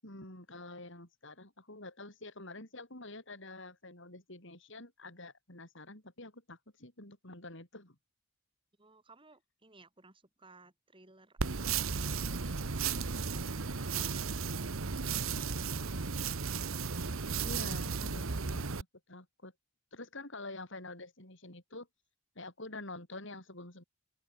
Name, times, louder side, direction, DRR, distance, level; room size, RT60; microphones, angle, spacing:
voice 1, 0.0-8.0 17.4-18.8 19.1-19.5 19.9-21.9 22.4-23.8, left 2 dB, 60° left, 7.1 m, -47 dB
voice 2, 8.8-12.5 13.0-14.2, right 3 dB, 25° right, 5.0 m, -60 dB
sound 1, 11.4-18.8, right 5 dB, 75° right, 1.1 m, -34 dB
open air
head